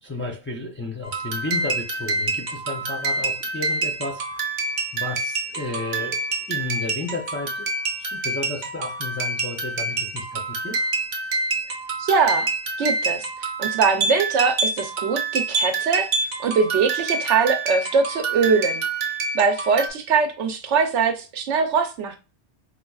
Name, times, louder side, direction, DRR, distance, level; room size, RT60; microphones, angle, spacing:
voice 1, 0.0-4.4 4.9-6.2 6.5-7.7 8.0-10.8, left 3 dB, 15° left, 0.4 m, -32 dB
sound 1, 1.0-19.9, right 3 dB, 50° right, 0.7 m, -27 dB
voice 2, 12.0-12.5 12.8-13.2 13.6-16.1 16.4-18.8 19.3-22.2, right 5 dB, 90° right, 1.0 m, -22 dB
4.5 x 2.4 x 2.3 m
omnidirectional pair, 1.2 m